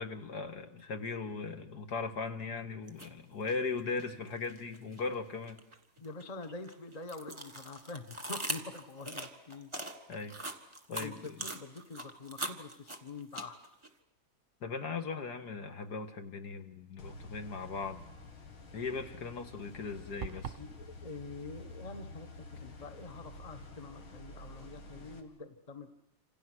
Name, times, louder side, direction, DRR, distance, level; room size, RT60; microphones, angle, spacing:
voice 1, 0.0-5.6 10.1-10.4 10.9-11.4 14.6-18.0 18.7-20.6, left 4 dB, 55° left, 6 dB, 2.1 m, -38 dB
sound 1, 2.9-3.1 3.5-5.0 5.4-13.9, right 2 dB, 15° right, 1.6 m, -41 dB
voice 2, 6.0-9.7 11.0-13.6 20.6-25.9, left 3 dB, 20° left, 8 dB, 1.2 m, -46 dB
sound 2, 17.0-25.2, left 2 dB, 85° left, 3.1 m, -49 dB
sound 3, 20.2-20.7, right 7 dB, 45° right, 1.2 m, -40 dB
28.5 x 27.0 x 6.3 m, 0.84 s
omnidirectional pair, 2.2 m